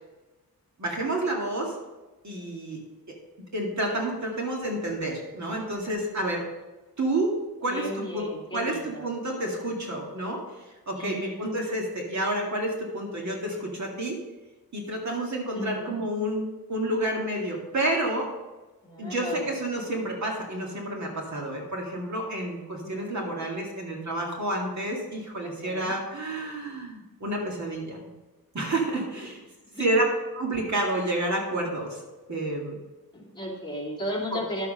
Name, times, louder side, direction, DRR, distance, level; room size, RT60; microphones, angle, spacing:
voice 1, 0.8-1.7 2.2-2.8 3.5-6.5 7.0-10.4 10.9-14.2 14.7-18.3 19.0-28.1 28.5-29.4 29.8-32.0 32.3-32.8 34.3-34.4, right 1 dB, 50° right, -1 dB, 2.3 m, -29 dB
voice 2, 7.7-9.1 10.9-11.6 15.5-16.0 18.8-19.5 22.8-23.2 25.4-26.0 29.7-29.9 33.1-34.7, equal, 10° left, -2 dB, 2.5 m, -35 dB
11.5 x 7.2 x 5.5 m, 1.1 s
wide cardioid pair, 150°, 37 cm